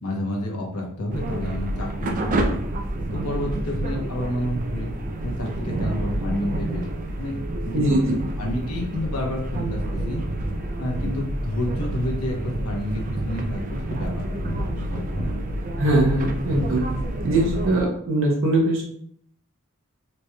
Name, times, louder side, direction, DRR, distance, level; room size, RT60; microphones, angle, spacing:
voice 1, 0.0-2.5 3.1-4.9 5.2-6.9 7.2-7.4 7.6-10.2 10.8-15.4, left 1 dB, 90° left, 0 dB, 0.9 m, -30 dB
sound 1, 1.1-17.8, right 1 dB, 40° right, 0.4 m, -28 dB
voice 2, 15.8-16.8 17.2-18.8, right 1 dB, 65° right, -2 dB, 0.8 m, -21 dB
4.2 x 3.0 x 2.2 m, 0.65 s
head